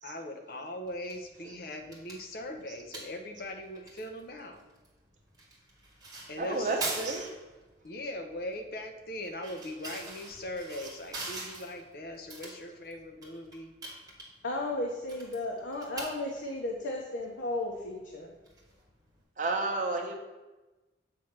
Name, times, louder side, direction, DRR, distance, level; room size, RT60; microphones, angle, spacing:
voice 1, 0.0-4.6 6.3-6.8 7.8-13.8, left 1 dB, 55° left, 6 dB, 0.8 m, -40 dB
sound 1, 0.8-19.2, right 2 dB, 20° right, 1.6 m, -45 dB
voice 2, 6.4-7.3 10.8-10.9 19.4-20.1, right 3 dB, 45° right, 2 dB, 0.9 m, -31 dB
voice 3, 14.4-18.3, left 2 dB, 85° left, -1 dB, 0.8 m, -34 dB
7.6 x 3.2 x 5.9 m, 1.1 s
head